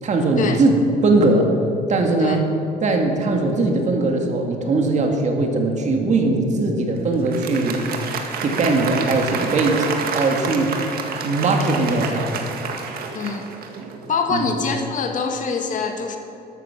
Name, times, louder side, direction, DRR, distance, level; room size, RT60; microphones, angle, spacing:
voice 1, 0.0-0.7 1.0-1.5 1.9-2.5 2.8-7.8 8.4-10.8 11.2-12.5 14.3-14.4, right 2 dB, 45° right, 3 dB, 2.3 m, -20 dB
Applause, 7.1-14.1, right 5 dB, 65° right, 1.8 m, -29 dB
voice 2, 13.1-13.5 14.1-16.2, left 5 dB, 50° left, 4 dB, 1.9 m, -24 dB
13.0 x 13.0 x 6.2 m, 2.9 s
cardioid pair, 110°, 17 cm